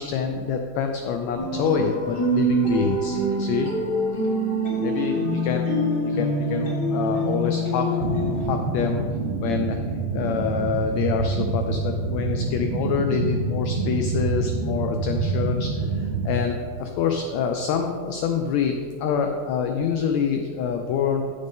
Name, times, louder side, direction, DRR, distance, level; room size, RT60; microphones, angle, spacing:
voice 1, 0.0-3.7 4.8-5.7 6.0-8.0 8.4-9.0 9.4-9.9 10.1-18.7 19.0-21.3, left 6 dB, 85° left, 4 dB, 1.5 m, -26 dB
sound 1, 1.4-8.4, right 1 dB, 20° left, 1.8 m, -25 dB
sound 2, 8.0-16.4, right 4 dB, 85° right, 1.4 m, -27 dB
14.5 x 5.1 x 3.7 m, 2.1 s
omnidirectional pair, 3.7 m